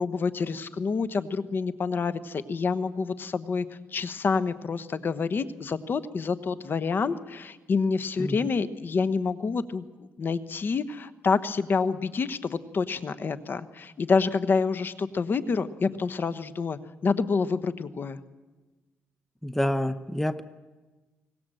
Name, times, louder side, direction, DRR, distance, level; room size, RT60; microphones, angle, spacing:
voice 1, 0.0-3.7 3.9-9.8 10.2-18.2, left 4 dB, 45° left, 14 dB, 1.1 m, -27 dB
voice 2, 19.4-20.4, left 1 dB, 5° left, 12 dB, 0.8 m, -27 dB
23.5 x 19.5 x 7.7 m, 1.2 s
cardioid pair, 95°, 5 cm